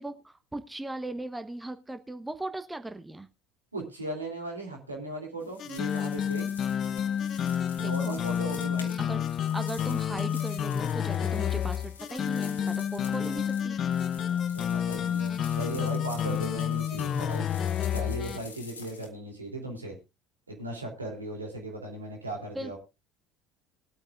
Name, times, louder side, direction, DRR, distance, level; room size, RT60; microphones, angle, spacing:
voice 1, 0.0-3.3 7.8-8.2 9.0-13.8 22.5-22.8, right 2 dB, 10° right, 10 dB, 1.1 m, -38 dB
voice 2, 3.7-6.5 7.8-9.0 14.3-17.5 17.9-20.0 20.5-22.8, right 2 dB, 85° right, 1 dB, 3.0 m, -37 dB
sound 1, 5.4-19.1, left 5 dB, 80° left, 1.7 m, -48 dB
sound 2, 5.6-18.4, left 9 dB, 40° left, 0.7 m, -30 dB
21.5 x 8.8 x 2.5 m, 0.26 s
figure-of-eight pair, 65°, 0 cm